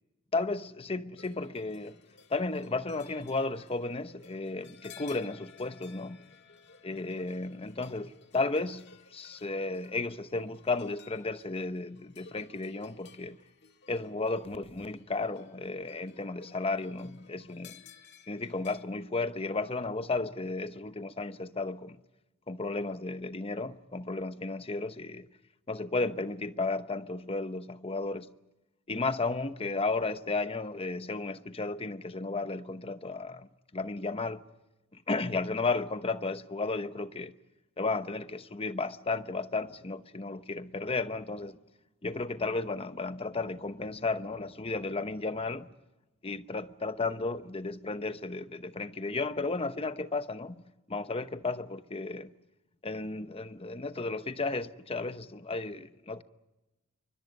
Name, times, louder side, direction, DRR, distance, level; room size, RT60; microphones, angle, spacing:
voice 1, 0.3-2.0 2.3-6.2 6.8-8.8 9.1-13.4 13.9-17.8 18.3-22.0 22.5-25.3 25.7-28.3 28.9-33.5 33.7-34.4 34.9-37.3 37.8-41.6 42.0-45.7 46.2-50.6 50.9-52.3 52.8-56.2, left 3 dB, 25° left, 0.9 m, -34 dB
sound 1, 1.2-18.9, left 6 dB, 55° left, 1.8 m, -56 dB
29.5 x 24.5 x 5.4 m
head